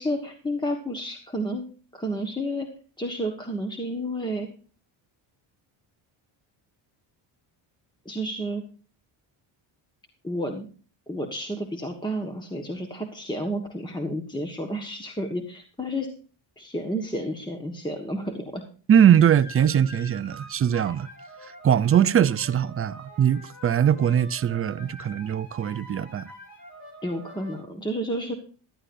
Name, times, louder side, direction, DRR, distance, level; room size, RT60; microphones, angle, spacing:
voice 1, 0.0-1.6 1.9-2.7 3.0-4.5 8.0-8.6 10.2-10.7 11.1-16.1 16.6-18.6 27.0-28.3, equal, 10° left, 1.4 m, -31 dB
voice 2, 18.9-21.1 21.6-26.3, right 9 dB, 30° right, 0.5 m, -21 dB
sound 1, 19.1-27.6, equal, 50° left, 4.7 m, -45 dB
14.0 x 12.0 x 2.6 m
cardioid pair, 100°, 49 cm